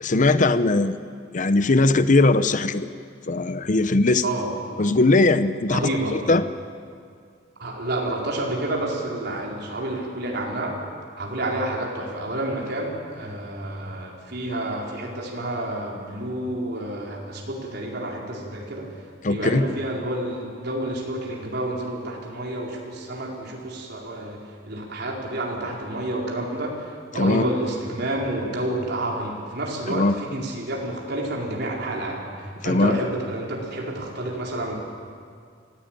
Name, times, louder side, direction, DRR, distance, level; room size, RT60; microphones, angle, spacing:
voice 1, 0.0-1.0 1.3-2.9 3.3-4.2 4.8-5.8 6.1-6.4 19.2-19.6 27.1-27.4 29.9-30.2 32.6-33.0, left 2 dB, 45° left, 12 dB, 0.7 m, -19 dB
voice 2, 4.2-4.5 5.7-6.2 7.6-10.8 11.2-18.9 19.3-34.7, right 1 dB, 60° right, -2 dB, 4.3 m, -29 dB
24.5 x 16.0 x 9.0 m, 2.2 s
head